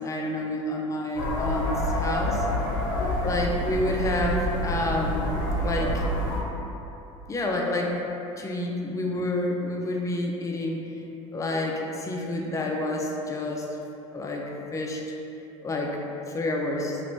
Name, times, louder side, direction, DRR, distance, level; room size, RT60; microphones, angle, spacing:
voice 1, 0.0-2.4 3.2-6.0 7.3-7.9 8.4-10.9 11.3-13.7 14.1-15.0 15.6-16.0 16.3-17.0, left 1 dB, 20° left, 0 dB, 0.4 m, -29 dB
sound 1, 1.1-6.4, equal, 75° left, 0.6 m, -27 dB
2.9 x 2.5 x 3.1 m, 3.0 s
hypercardioid pair, 85°, 17 cm